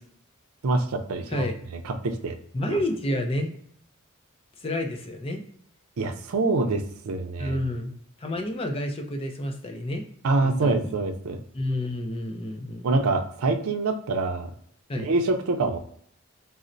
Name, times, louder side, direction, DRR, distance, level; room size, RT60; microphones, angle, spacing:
voice 1, 0.6-1.4 1.8-2.4 2.7-2.8 6.0-7.6 10.2-11.4 12.8-14.5 15.0-15.8, right 3 dB, 85° right, 6 dB, 0.5 m, -25 dB
voice 2, 2.5-3.5 4.6-5.4 7.4-7.9 8.2-10.0 10.4-10.9 11.5-12.9 14.9-15.1, left 1 dB, 25° left, 3 dB, 0.4 m, -29 dB
4.1 x 2.0 x 2.5 m, 0.64 s
head